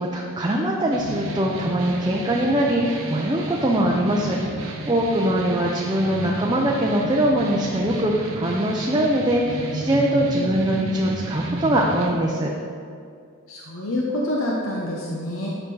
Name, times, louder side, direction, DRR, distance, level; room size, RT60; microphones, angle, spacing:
voice 1, 0.0-12.5, right 1 dB, 20° right, -2 dB, 0.6 m, -22 dB
sound 1, 0.9-12.1, right 1 dB, 75° right, 1.1 m, -32 dB
voice 2, 13.5-15.6, left 1 dB, 75° left, -3 dB, 0.9 m, -27 dB
10.5 x 5.9 x 3.9 m, 2.3 s
head